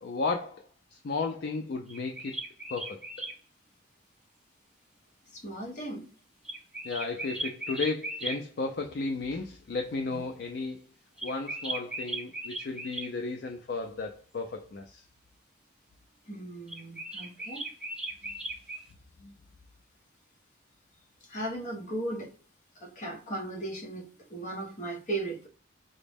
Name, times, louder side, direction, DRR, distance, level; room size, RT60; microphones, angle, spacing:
voice 1, 0.0-2.4 2.7-3.0 6.8-10.8 11.2-15.0 19.2-19.3, left 3 dB, 55° left, 0.4 m, -34 dB
sound 1, 1.9-3.4 6.4-8.4 11.2-13.1 16.7-18.9, right 2 dB, 5° right, 0.6 m, -37 dB
voice 2, 5.3-6.1 10.1-10.2 16.3-17.7 21.3-22.3 22.8-25.5, right 2 dB, 40° left, 0.9 m, -37 dB
5.0 x 2.0 x 3.4 m
head